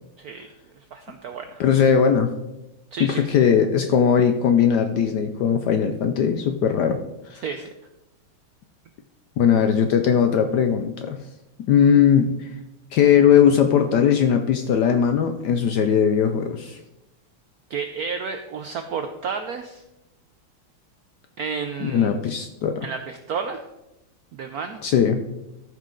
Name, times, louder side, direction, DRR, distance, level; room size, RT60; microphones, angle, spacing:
voice 1, 0.2-0.5 0.9-1.6 2.9-3.3 7.4-7.7 17.7-19.8 21.4-22.4 22.8-23.6 24.3-24.8, right 5 dB, 85° right, 7 dB, 0.8 m, -31 dB
voice 2, 1.6-2.3 3.0-7.0 7.3-7.4 9.4-11.2 11.7-12.5 12.9-16.8 21.8-22.9 24.8-25.2, left 8 dB, 70° left, 7 dB, 1.0 m, -19 dB
13.5 x 5.7 x 3.8 m, 0.93 s
omnidirectional pair, 2.3 m